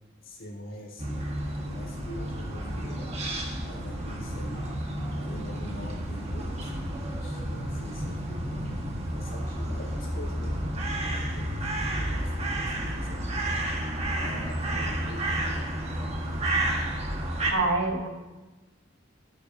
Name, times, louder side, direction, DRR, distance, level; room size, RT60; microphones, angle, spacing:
voice 1, 0.2-1.3 1.6-3.1 3.6-4.7 5.1-6.7 7.1-8.8 9.1-10.6 11.0-13.7 14.2-15.6, left 1 dB, 70° left, -3 dB, 3.7 m, -44 dB
sound 1, 1.0-17.5, right 1 dB, 35° right, 1.6 m, -31 dB
voice 2, 17.5-18.1, right 2 dB, 80° right, 0 dB, 2.1 m, -25 dB
18.0 x 9.9 x 2.8 m, 1.2 s
head